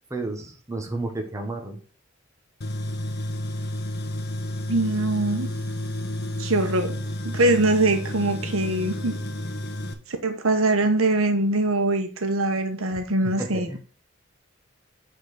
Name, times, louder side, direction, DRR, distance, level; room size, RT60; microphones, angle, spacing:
voice 1, 0.1-1.8 12.9-13.8, right 2 dB, 15° right, 3 dB, 1.4 m, -32 dB
Tools, 2.6-9.9, left 1 dB, 50° left, 1.2 m, -31 dB
voice 2, 4.7-5.5 6.4-6.9 7.2-9.2 10.1-13.7, right 2 dB, 85° right, 6 dB, 1.3 m, -23 dB
8.2 x 4.1 x 6.6 m, 0.40 s
head